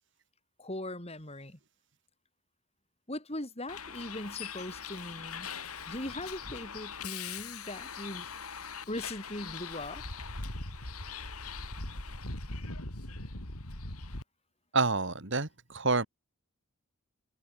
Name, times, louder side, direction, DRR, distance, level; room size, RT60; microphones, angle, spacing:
voice 1, 0.6-1.6 3.1-5.5 5.9-8.3 8.9-10.0, left 1 dB, 30° left, 5.1 m, -40 dB
Bus, 3.7-14.2, left 4 dB, 85° left, 5.0 m, -41 dB
voice 2, 14.7-16.1, right 3 dB, 55° right, 2.4 m, -28 dB
head